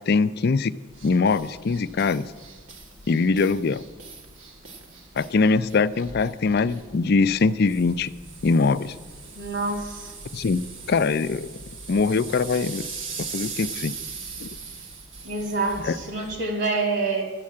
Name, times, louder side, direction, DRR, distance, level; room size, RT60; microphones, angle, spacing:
voice 1, 0.1-0.7 1.0-2.3 3.1-3.8 5.2-8.1 8.4-8.9 10.3-10.6 10.9-11.5 11.9-12.9 13.2-13.9 14.4-14.5 15.9-16.0, left 4 dB, 55° left, 14 dB, 0.4 m, -22 dB
sound 1, 0.9-16.4, right 4 dB, 80° right, 1.7 m, -40 dB
voice 2, 9.4-10.1 15.2-17.2, right 3 dB, 65° right, 3 dB, 2.5 m, -27 dB
11.5 x 7.6 x 8.5 m, 1.4 s
head